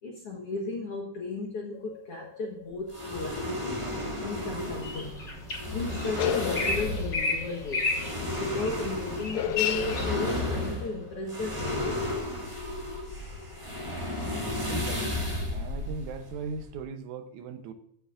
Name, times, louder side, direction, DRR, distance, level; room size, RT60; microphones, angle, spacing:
voice 1, 0.0-3.8 4.2-5.1 5.7-7.9 8.3-12.0, left 3 dB, 60° left, -1 dB, 1.6 m, -35 dB
sound 1, 1.7-3.5 4.2-4.3 4.8-4.9 5.9-12.2, left 10 dB, 80° left, 2.3 m, -35 dB
sound 2, 2.9-16.8, left 1 dB, 10° right, 1.5 m, -33 dB
sound 3, 4.3-10.0, left 2 dB, 30° left, 3.2 m, -34 dB
voice 2, 14.7-15.2 15.5-17.7, right 5 dB, 80° right, 8 dB, 1.7 m, -38 dB
15.5 x 7.9 x 2.5 m, 0.72 s
omnidirectional pair, 4.6 m